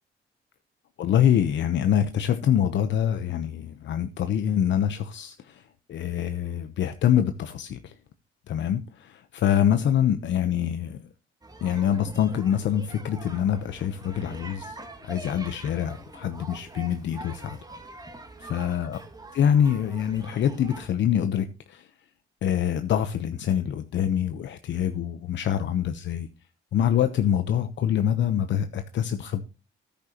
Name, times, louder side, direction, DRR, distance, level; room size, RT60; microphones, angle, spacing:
voice 1, 1.0-7.9 8.5-11.0 11.6-17.6 18.4-19.0 19.3-21.9 22.4-26.3 26.7-29.4, left 9 dB, 65° left, 0.9 m, -25 dB
sound 1, 11.4-20.9, right 2 dB, 20° right, 2.2 m, -44 dB
13.5 x 10.5 x 3.0 m
cardioid pair, 90°, 20 cm